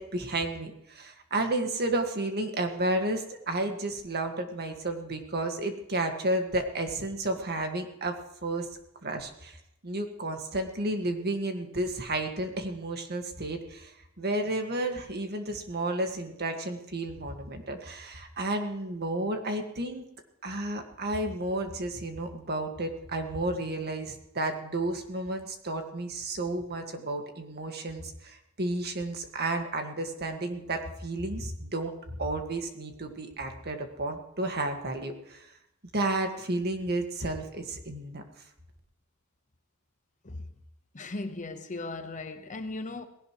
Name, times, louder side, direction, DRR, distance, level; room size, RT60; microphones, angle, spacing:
voice 1, 0.0-8.7 9.0-9.6 9.8-20.0 20.4-35.5 35.9-38.2, right 2 dB, 50° right, 1.8 m, -32 dB
voice 2, 40.9-43.0, left 2 dB, 35° left, 1.1 m, -37 dB
19.0 x 17.0 x 3.1 m
head